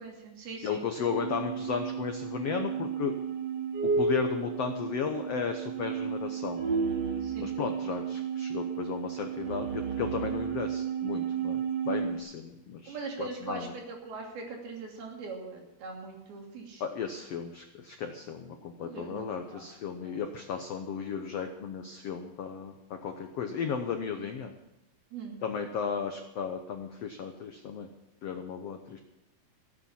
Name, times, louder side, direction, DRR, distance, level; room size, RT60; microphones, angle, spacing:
voice 1, 0.0-0.9 7.2-7.6 12.9-16.8 18.8-19.7 20.0-20.2 25.1-25.4, right 4 dB, 80° right, 0 dB, 4.7 m, -41 dB
voice 2, 0.6-3.1 3.8-6.6 7.4-13.7 16.8-22.7 23.0-24.5 25.4-27.9 28.2-29.0, left 6 dB, 80° left, 5 dB, 1.4 m, -35 dB
sound 1, 1.0-12.2, right 6 dB, 50° right, 2.2 m, -32 dB
16.5 x 9.0 x 7.2 m, 0.91 s
omnidirectional pair, 4.3 m